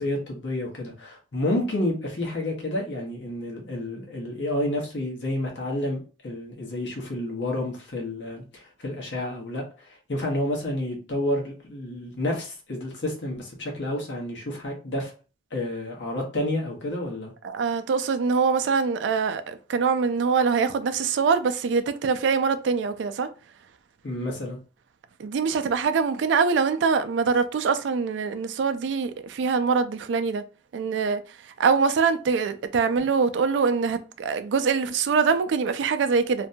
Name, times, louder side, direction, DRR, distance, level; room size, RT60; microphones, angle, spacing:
voice 1, 0.0-15.1 15.5-17.3 24.0-24.6, left 1 dB, 80° left, 0.9 m, -30 dB
voice 2, 17.4-23.3 25.2-30.4 30.7-31.2 31.6-36.5, right 5 dB, 85° right, 0.3 m, -24 dB
2.6 x 2.2 x 2.6 m
head